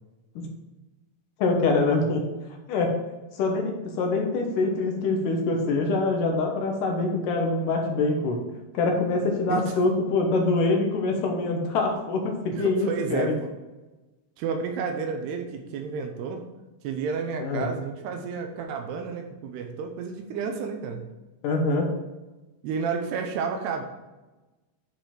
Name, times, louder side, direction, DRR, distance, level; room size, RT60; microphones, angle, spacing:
voice 1, 1.4-2.2 2.7-2.9 3.4-8.4 8.7-13.3 17.4-17.6 21.4-21.9, left 3 dB, 70° left, 2 dB, 2.2 m, -24 dB
voice 2, 9.5-9.8 12.6-13.5 14.4-16.4 16.8-21.0 22.6-23.8, right 5 dB, 85° right, 4 dB, 2.8 m, -31 dB
9.4 x 4.9 x 4.4 m, 1.1 s
omnidirectional pair, 4.7 m